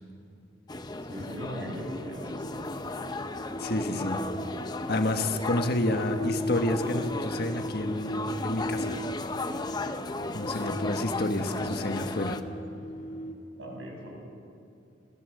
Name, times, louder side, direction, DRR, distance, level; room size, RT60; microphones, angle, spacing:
sound 1, 0.7-12.4, left 2 dB, 20° left, 0.8 m, -35 dB
voice 1, 1.1-2.6 13.6-14.1, equal, 90° right, -1 dB, 6.8 m, -39 dB
sound 2, 2.3-13.3, equal, 40° left, 1.9 m, -38 dB
voice 2, 3.6-4.2 4.9-8.1 8.4-9.0 9.7-9.9 10.3-12.4, left 1 dB, 55° left, 6 dB, 1.5 m, -29 dB
29.5 x 15.5 x 6.8 m, 2.6 s
head